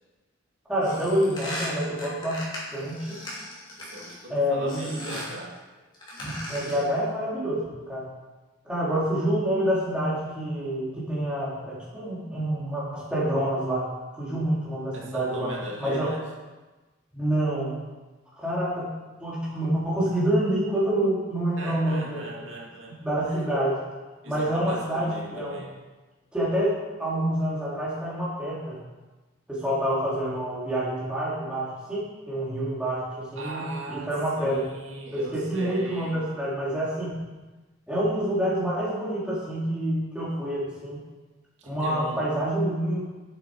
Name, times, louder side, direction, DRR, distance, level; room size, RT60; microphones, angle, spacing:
voice 1, 0.7-2.4 2.7-3.2 4.3-5.2 6.2-8.1 8.6-13.9 14.1-15.5 15.8-16.1 17.1-17.7 18.4-18.9 19.2-22.4 22.9-23.8 24.3-25.7 26.3-26.7 27.0-28.8 29.5-34.6 35.1-37.1 37.9-41.0 41.6-43.0, right 1 dB, 5° right, -8 dB, 3.0 m, -27 dB
sound 1, 0.8-4.3 4.7-5.4 5.9-6.9, left 1 dB, 25° left, 2.9 m, -38 dB
voice 2, 3.8-5.6 14.9-16.2 21.6-23.0 23.3-23.5 24.2-25.7 33.4-34.1 34.4-36.2 41.6-42.2, right 1 dB, 85° right, -2 dB, 2.1 m, -39 dB
11.5 x 7.8 x 4.8 m, 1.2 s
head